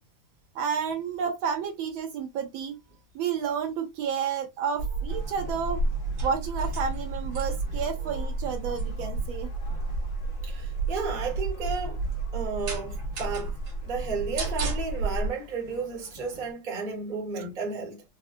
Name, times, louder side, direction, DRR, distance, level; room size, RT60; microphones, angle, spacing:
voice 1, 0.5-2.8 3.1-5.8 6.2-9.5, right 7 dB, 75° right, 1.3 m, -31 dB
sound 1, 4.8-15.3, right 3 dB, 55° right, 1.4 m, -31 dB
sound 2, 5.1-16.5, left 2 dB, 40° left, 1.6 m, -50 dB
voice 2, 10.4-13.6 13.8-18.0, right 4 dB, 30° right, 1.1 m, -33 dB
4.3 x 2.3 x 2.5 m
omnidirectional pair, 2.3 m